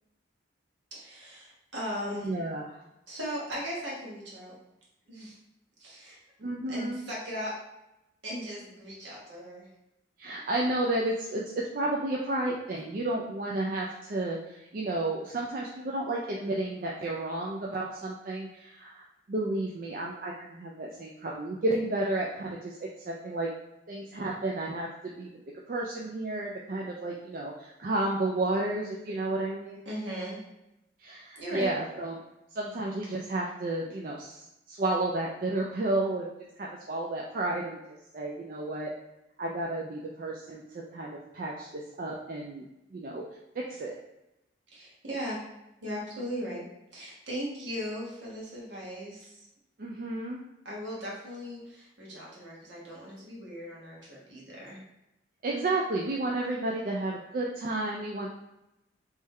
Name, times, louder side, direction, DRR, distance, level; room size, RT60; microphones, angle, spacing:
voice 1, 0.9-2.3 3.1-4.5 5.1-5.4 5.8-6.2 6.7-7.5 8.2-9.7 29.8-30.4 31.4-31.7 44.7-45.4 45.8-46.6 46.9-49.5 50.6-54.8, equal, 70° right, -5 dB, 1.4 m, -38 dB
voice 2, 2.2-2.7 6.4-7.0 10.2-22.8 23.0-23.5 23.9-25.3 25.7-29.9 31.0-32.2 32.5-37.8 38.1-38.9 39.4-43.2 43.5-43.9 49.8-50.4 55.4-58.3, right 2 dB, 45° right, -2 dB, 0.4 m, -32 dB
3.5 x 3.2 x 3.2 m, 0.90 s
head